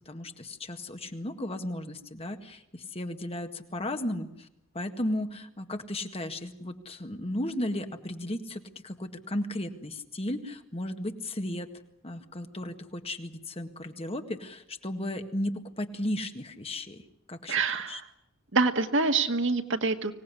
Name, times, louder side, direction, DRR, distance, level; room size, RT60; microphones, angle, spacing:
voice 1, 0.1-4.5 4.7-11.7 12.0-17.0 17.3-17.6 17.9-18.0, left 1 dB, 30° left, 6 dB, 1.8 m, -35 dB
voice 2, 17.5-18.0 18.5-20.1, right 4 dB, 65° right, 7 dB, 1.8 m, -26 dB
25.0 x 18.0 x 9.8 m, 0.82 s
head